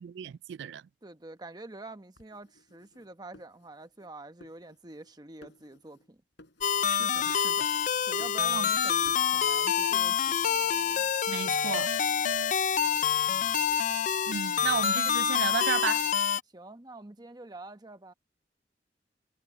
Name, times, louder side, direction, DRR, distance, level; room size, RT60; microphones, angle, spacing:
voice 1, 0.0-0.8 6.8-7.7 8.5-8.6 11.3-11.9 14.3-16.0, right 8 dB, 70° right, 0.3 m, -34 dB
voice 2, 1.0-6.2 8.0-11.1 13.2-13.6 16.5-18.1, right 2 dB, 20° right, 1.0 m, -47 dB
sound 1, 2.2-4.1 4.4-5.1 5.4-6.1 6.4-7.0 7.3-8.8 9.0-9.3, left 1 dB, 70° left, 6.9 m, -57 dB
sound 2, 6.6-16.4, left 8 dB, 45° left, 0.4 m, -27 dB
head